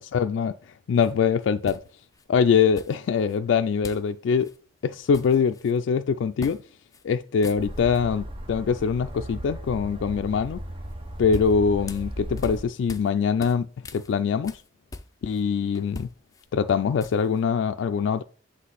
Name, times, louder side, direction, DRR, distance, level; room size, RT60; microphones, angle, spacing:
voice 1, 0.1-0.5 0.9-1.8 2.3-4.5 4.8-6.6 7.0-10.6 11.2-13.7 13.9-14.6 15.2-16.1 16.5-18.2, left 6 dB, 80° left, 0.3 m, -23 dB
sound 1, 1.0-1.1 1.6-2.2 2.7-3.4 3.8-4.1 4.4-4.6 4.9-5.8 6.4-6.6 6.9-7.0 7.3-8.0 10.9-13.1 13.4-15.4 15.7-17.4, left 2 dB, 20° left, 0.5 m, -41 dB
sound 2, 7.6-12.6, right 1 dB, 30° right, 0.7 m, -36 dB
7.6 x 3.3 x 3.9 m
head